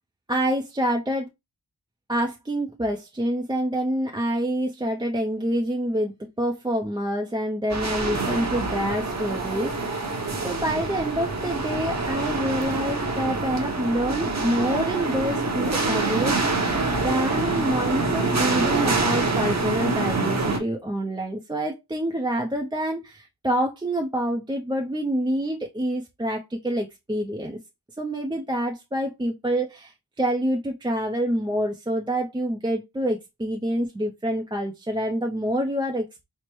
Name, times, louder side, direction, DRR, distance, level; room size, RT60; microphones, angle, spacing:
voice 1, 0.3-1.3 2.1-16.7 17.0-27.6 28.0-36.2, right 1 dB, 10° right, 0.4 m, -27 dB
sound 1, 7.7-20.6, right 3 dB, 45° right, 0.8 m, -26 dB
4.6 x 2.0 x 3.0 m
wide cardioid pair, 85°, 39 cm